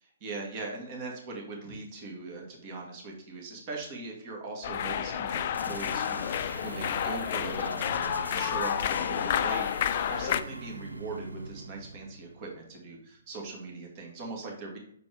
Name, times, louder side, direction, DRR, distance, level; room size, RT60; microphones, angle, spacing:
voice 1, 0.2-14.8, right 3 dB, 35° right, 0 dB, 1.9 m, -40 dB
sound 1, 4.6-10.4, left 9 dB, 45° left, 0.4 m, -30 dB
sound 2, 5.5-13.1, right 2 dB, 90° right, 0.7 m, -43 dB
6.4 x 5.0 x 3.4 m, 0.70 s
figure-of-eight pair, 130°, 0 cm